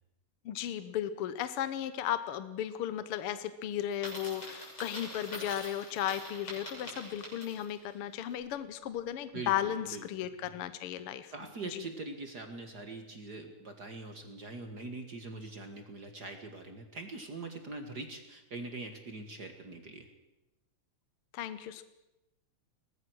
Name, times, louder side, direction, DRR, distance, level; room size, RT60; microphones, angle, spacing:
voice 1, 0.4-11.3 11.7-11.8 21.3-21.8, left 11 dB, 65° left, 12 dB, 1.4 m, -35 dB
Coin (dropping), 3.9-7.8, left 1 dB, 40° left, 8.6 m, -44 dB
voice 2, 9.3-10.5 11.3-20.1, right 3 dB, 40° right, 5 dB, 1.8 m, -43 dB
22.5 x 19.0 x 6.3 m, 0.96 s
omnidirectional pair, 3.4 m